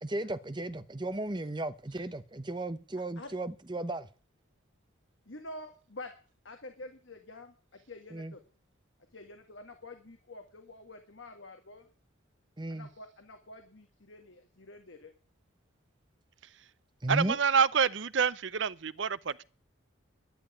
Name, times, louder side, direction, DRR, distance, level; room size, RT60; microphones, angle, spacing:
voice 1, 0.0-4.1 8.1-8.3 12.6-12.9 17.0-17.4, right 2 dB, 20° right, 0.8 m, -35 dB
voice 2, 5.3-6.1 6.4-8.4 9.1-11.9 12.7-15.1 17.2-17.4, left 2 dB, 70° left, 1.8 m, -48 dB
voice 3, 17.1-19.4, right 6 dB, 65° right, 0.6 m, -27 dB
11.5 x 11.0 x 8.5 m
head